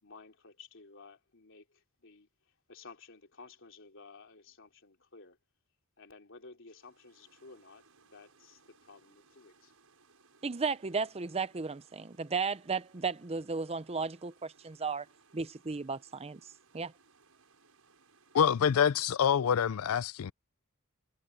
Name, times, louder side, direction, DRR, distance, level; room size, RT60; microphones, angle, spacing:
voice 1, 0.0-5.4 6.0-9.7, left 4 dB, 60° left, 3.3 m, -54 dB
sound 1, 6.7-19.1, right 4 dB, 80° right, 6.9 m, -65 dB
voice 2, 10.4-15.1 15.3-16.4 16.7-16.9, right 4 dB, 30° right, 0.6 m, -34 dB
voice 3, 18.3-20.3, left 8 dB, 80° left, 0.4 m, -26 dB
head